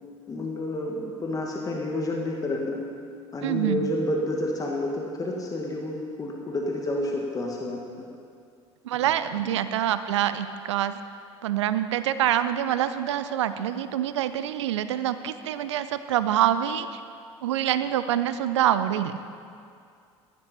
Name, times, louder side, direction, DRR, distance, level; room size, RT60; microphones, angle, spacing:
voice 1, 0.3-2.8 3.3-8.1, left 1 dB, 25° left, -1 dB, 1.8 m, -29 dB
voice 2, 3.4-3.9 8.8-11.0 11.4-17.0 17.4-19.2, right 11 dB, 70° right, 12 dB, 0.6 m, -26 dB
15.0 x 11.5 x 4.3 m, 2.4 s
figure-of-eight pair, 65°, 15 cm